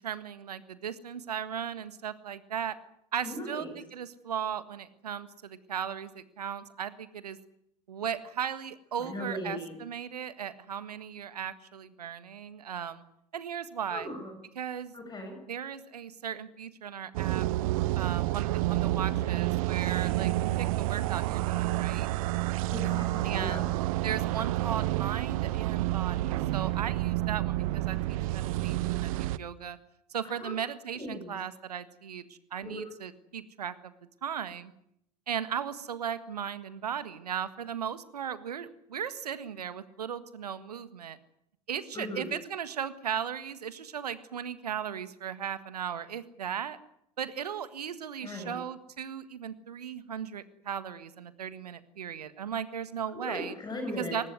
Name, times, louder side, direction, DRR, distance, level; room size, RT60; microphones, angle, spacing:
voice 1, 0.0-2.8 3.1-7.4 7.9-13.0 13.3-14.1 14.5-14.9 15.5-17.5 17.9-22.1 23.2-23.6 24.0-29.8 30.1-32.2 32.5-33.9 34.2-34.7 35.3-41.2 41.7-46.8 47.2-53.5 54.0-54.3, right 8 dB, 75° right, 14 dB, 1.7 m, -37 dB
voice 2, 3.2-3.7 9.0-9.8 13.9-14.3 14.9-15.4 22.7-23.7 30.2-30.5 30.9-31.3 32.6-32.8 41.9-42.3 48.2-48.6 53.1-54.2, left 1 dB, 20° left, 4 dB, 6.5 m, -38 dB
sound 1, 17.1-29.4, right 16 dB, 60° right, 0.9 m, -29 dB
23.5 x 20.0 x 9.5 m, 0.74 s
figure-of-eight pair, 75°, 20 cm